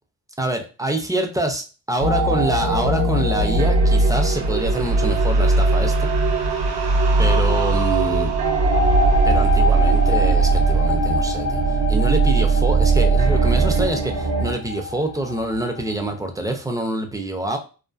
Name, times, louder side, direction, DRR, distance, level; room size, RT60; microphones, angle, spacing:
voice 1, 0.4-6.1 7.2-8.4 9.2-17.6, right 1 dB, 10° right, 4 dB, 0.3 m, -26 dB
sound 1, 2.0-14.5, right 3 dB, 80° right, 0.7 m, -19 dB
sound 2, 8.5-15.9, left 4 dB, 80° left, 0.7 m, -26 dB
2.5 x 2.4 x 2.3 m, 0.34 s
wide cardioid pair, 120°, 37 cm